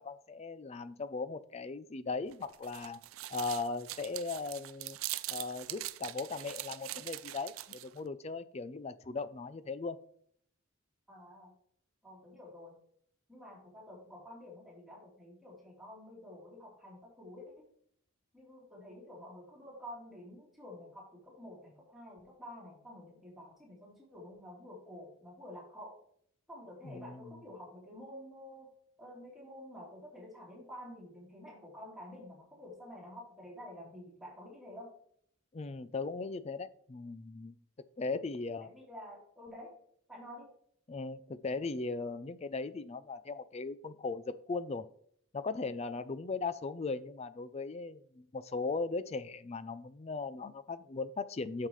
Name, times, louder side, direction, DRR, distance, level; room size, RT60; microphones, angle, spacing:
voice 1, 0.0-3.0 3.3-5.0 5.3-10.0 26.8-27.4 35.5-37.6 38.0-38.7 40.9-44.8 45.3-51.7, left 4 dB, 30° left, 14 dB, 0.4 m, -38 dB
sound 1, 2.3-8.0, right 16 dB, 70° right, 0.4 m, -42 dB
voice 2, 11.1-11.5 12.0-12.8 13.3-17.4 18.3-26.0 26.5-28.7 29.0-34.9 38.6-39.7 40.1-40.5, left 1 dB, ahead, -6 dB, 3.3 m, -49 dB
9.0 x 6.6 x 3.1 m, 0.63 s
head